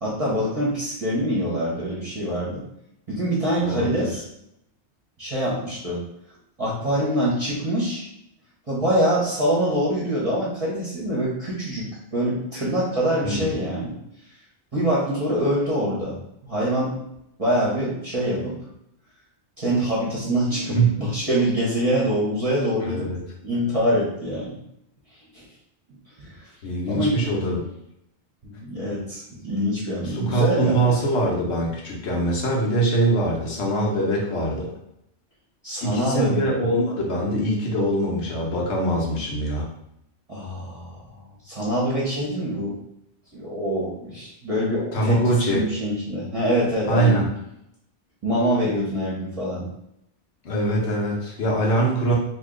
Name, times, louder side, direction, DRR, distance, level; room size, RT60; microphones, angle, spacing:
voice 1, 0.0-2.6 3.1-4.2 5.2-6.0 6.6-8.1 8.7-14.0 14.7-16.1 16.4-16.9 17.4-18.6 19.6-23.1 23.4-24.5 25.3-25.4 26.2-26.5 26.9-27.2 28.4-30.9 35.6-36.7 40.3-41.0 41.4-42.7 43.3-47.2 48.2-49.7, equal, 35° right, -7 dB, 0.9 m, -25 dB
voice 2, 3.6-4.1 13.2-13.5 20.7-21.0 22.8-23.2 26.6-27.7 30.0-34.7 35.8-39.7 44.9-45.6 46.9-47.3 50.4-52.1, right 2 dB, 75° left, -2 dB, 1.2 m, -23 dB
2.9 x 2.7 x 3.7 m, 0.77 s
omnidirectional pair, 1.1 m